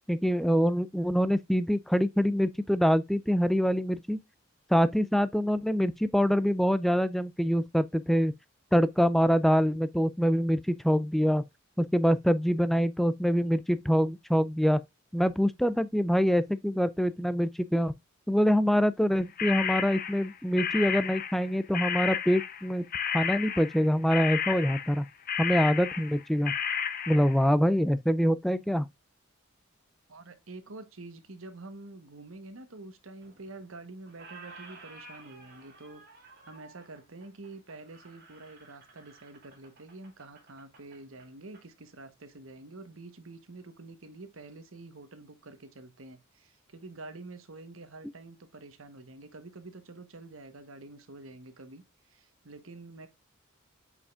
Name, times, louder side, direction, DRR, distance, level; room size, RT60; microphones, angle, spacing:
voice 1, 0.1-4.2 4.7-8.3 8.7-11.4 11.8-14.8 15.1-17.9 18.3-22.8 23.1-25.0 25.4-26.5 27.1-28.9, equal, ahead, 0.3 m, -25 dB
sound 1, 19.4-21.5 21.7-27.4, left 8 dB, 45° left, 0.8 m, -32 dB
voice 2, 30.1-36.0 36.4-51.8 52.1-53.1, right 2 dB, 75° right, 1.1 m, -47 dB
Squeak, 33.2-33.8 34.0-41.7, right 3 dB, 50° right, 2.3 m, -53 dB
8.3 x 5.0 x 2.4 m
head